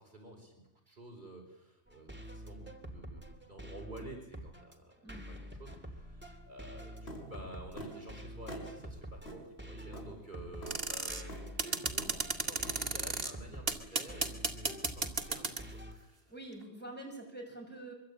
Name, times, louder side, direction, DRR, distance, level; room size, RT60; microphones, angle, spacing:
voice 1, 0.0-5.0 5.3-16.2, right 1 dB, 45° right, 0 dB, 5.9 m, -51 dB
sound 1, 1.9-15.9, equal, 10° right, 2.9 m, -47 dB
sound 2, 7.1-7.3 7.8-8.0 8.5-8.7 9.3-9.4 9.9-10.1 10.6-10.8 11.3-11.5 12.0-12.2 12.6-12.8, right 1 dB, 70° left, 5.8 m, -44 dB
sound 3, 10.7-11.2 11.6-13.3 13.7-15.7, right 3 dB, 60° right, 2.3 m, -33 dB
voice 2, 16.3-17.9, right 2 dB, 10° left, -1 dB, 8.0 m, -46 dB
24.5 x 24.0 x 8.9 m, 0.89 s
omnidirectional pair, 1.1 m